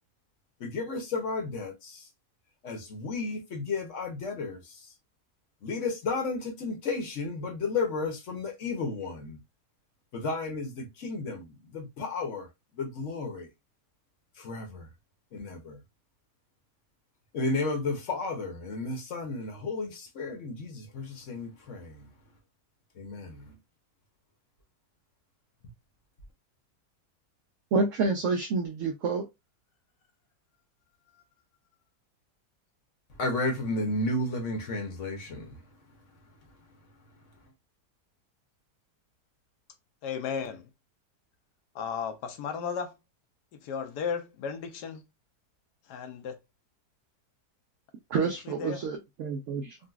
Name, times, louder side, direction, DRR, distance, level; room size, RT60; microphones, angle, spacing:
voice 1, 0.6-2.0 2.6-4.8 5.6-9.4 10.1-12.5 12.7-13.5 14.4-14.9 15.3-15.8 17.3-22.0 23.0-23.5 33.2-35.6, left 3 dB, 55° left, 1.1 m, -33 dB
voice 2, 27.7-29.3 48.1-49.8, right 4 dB, 70° right, 0.8 m, -28 dB
voice 3, 40.0-40.7 41.7-43.0 43.5-45.0 45.9-46.4 48.2-48.8, left 6 dB, 80° left, 1.2 m, -35 dB
3.8 x 2.3 x 2.3 m
omnidirectional pair, 1.8 m